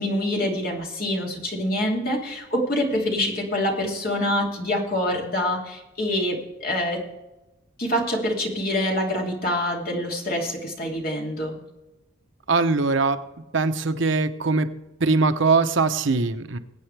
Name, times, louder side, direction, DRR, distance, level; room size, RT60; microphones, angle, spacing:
voice 1, 0.0-7.0 7.8-11.6, left 1 dB, 45° left, -1 dB, 2.8 m, -26 dB
voice 2, 12.5-13.2 13.5-14.7 15.0-16.6, right 3 dB, 65° right, 9 dB, 0.8 m, -21 dB
21.5 x 8.9 x 3.4 m, 0.99 s
head